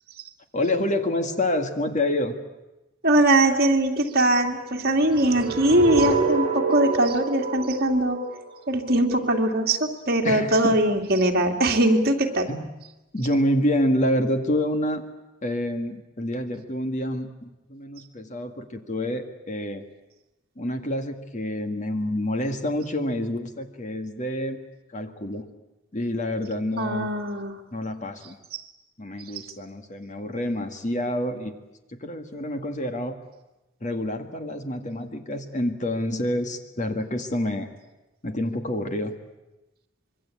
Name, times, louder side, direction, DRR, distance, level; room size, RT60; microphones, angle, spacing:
voice 1, 0.5-2.4 10.2-10.8 12.5-12.7 13.1-15.0 15.4-19.8 20.6-24.6 24.9-25.5 25.9-27.1 27.7-28.4 29.0-31.6 32.0-33.2 33.8-37.7 38.2-39.2, left 1 dB, 40° left, 6 dB, 2.0 m, -27 dB
voice 2, 3.0-8.2 8.7-12.5 26.8-27.5, right 1 dB, 50° right, 2 dB, 2.7 m, -21 dB
sound 1, 5.0-9.1, right 4 dB, 35° right, 4.8 m, -27 dB
25.5 x 22.5 x 8.6 m, 1.0 s
head